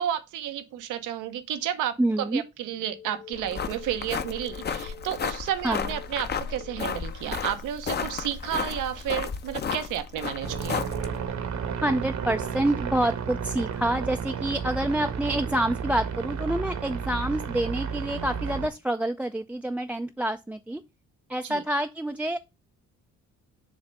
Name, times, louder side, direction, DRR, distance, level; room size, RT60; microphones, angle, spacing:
voice 1, 0.0-10.8 21.4-21.6, right 11 dB, 90° right, 0.9 m, -32 dB
voice 2, 2.0-2.4 5.6-5.8 11.8-20.8 21.3-22.4, right 1 dB, 5° right, 0.4 m, -27 dB
sound 1, 2.7-9.8, left 9 dB, 90° left, 1.6 m, -48 dB
sound 2, 3.3-11.3, left 6 dB, 35° left, 0.7 m, -33 dB
sound 3, 10.4-18.7, right 7 dB, 70° right, 1.2 m, -32 dB
7.0 x 3.3 x 5.2 m
cardioid pair, 90°, 30 cm